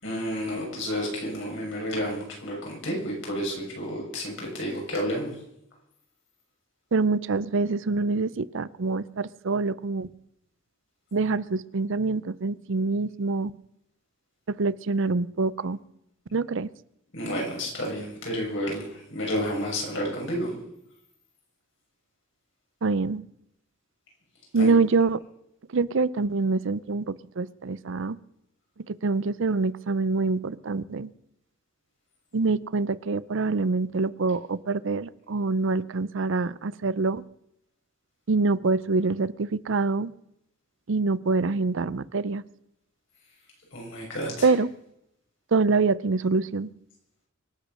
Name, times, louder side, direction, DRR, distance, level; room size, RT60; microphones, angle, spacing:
voice 1, 0.0-5.4 17.1-20.5 24.5-24.7 43.7-44.5, equal, 65° left, -1 dB, 6.6 m, -31 dB
voice 2, 6.9-10.1 11.1-13.5 14.5-15.8 16.3-16.7 22.8-23.2 24.5-25.2 25.7-28.2 28.9-31.1 32.3-37.2 38.3-40.1 40.9-42.4 44.4-44.7 45.5-46.7, right 3 dB, 65° right, 18 dB, 0.6 m, -25 dB
24.5 x 8.4 x 6.3 m, 0.78 s
head